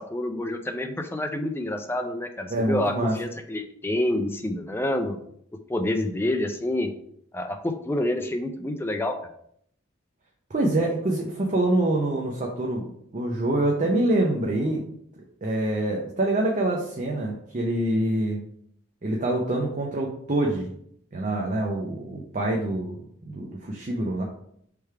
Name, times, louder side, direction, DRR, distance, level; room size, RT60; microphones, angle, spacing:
voice 1, 0.0-5.2 5.7-6.9 7.3-9.2, left 1 dB, 10° left, 6 dB, 0.3 m, -28 dB
voice 2, 2.5-3.1 10.5-12.9 13.1-14.8 15.2-18.4 19.0-20.7 21.1-24.2, right 1 dB, 35° right, -1 dB, 0.6 m, -25 dB
3.4 x 3.3 x 4.4 m, 0.68 s
head